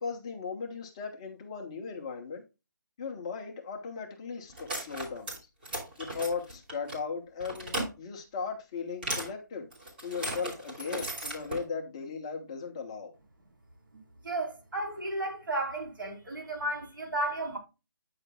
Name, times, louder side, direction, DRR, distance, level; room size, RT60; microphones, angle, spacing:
voice 1, 0.0-2.4 3.0-5.4 6.0-9.7 10.0-13.1, left 5 dB, 15° left, 0.7 m, -37 dB
sound 1, 4.5-5.4 5.6-6.9 7.4-7.9 9.0-9.3 9.7-11.6, right 1 dB, 30° right, 2.8 m, -36 dB
voice 2, 13.9-17.6, right 1 dB, 75° right, 3.7 m, -34 dB
8.9 x 6.5 x 2.2 m
hypercardioid pair, 175°, 11 cm